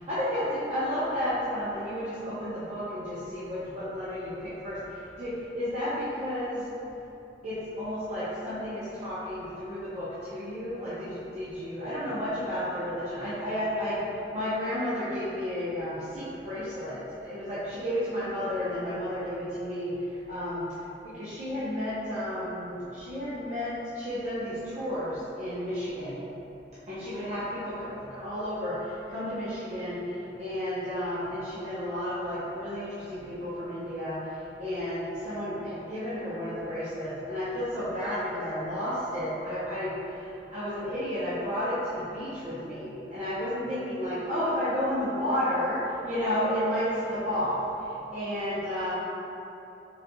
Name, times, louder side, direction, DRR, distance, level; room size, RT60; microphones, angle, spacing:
voice 1, 0.0-6.7 7.4-20.6 21.1-26.3 26.9-48.9, equal, 40° right, -12 dB, 0.6 m, -32 dB
4.1 x 4.0 x 2.2 m, 3.0 s
head